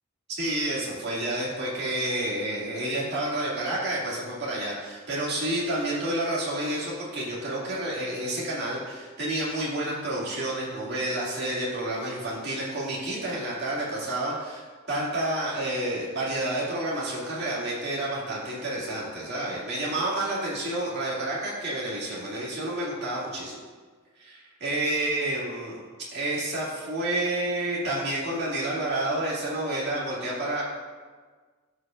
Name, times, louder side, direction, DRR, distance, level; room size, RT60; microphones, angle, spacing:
voice 1, 0.4-23.6 24.2-25.8 26.1-30.6, right 1 dB, 55° right, -6 dB, 2.2 m, -29 dB
14.0 x 5.0 x 2.5 m, 1.5 s
head